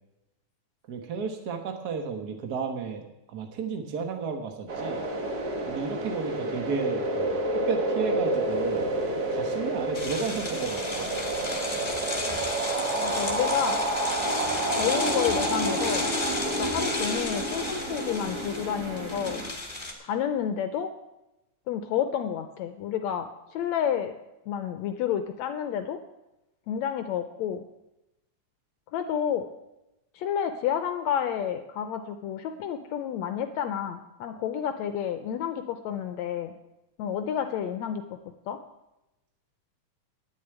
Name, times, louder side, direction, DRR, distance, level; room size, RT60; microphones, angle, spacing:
voice 1, 0.9-5.0 5.7-8.9 9.3-11.1, right 5 dB, 75° right, 4 dB, 0.8 m, -33 dB
sound 1, 4.7-19.5, right 2 dB, 50° right, 1.2 m, -29 dB
sound 2, 9.9-19.9, left 2 dB, 20° left, 1.2 m, -34 dB
voice 2, 13.0-13.8 14.7-16.1 16.6-19.4 20.0-20.9 21.7-24.1 24.5-26.0 26.7-27.6 28.9-29.5 30.1-36.5 37.0-38.0 38.5-38.6, left 9 dB, 75° left, 8 dB, 1.7 m, -30 dB
10.5 x 6.7 x 9.1 m, 0.95 s
omnidirectional pair, 3.5 m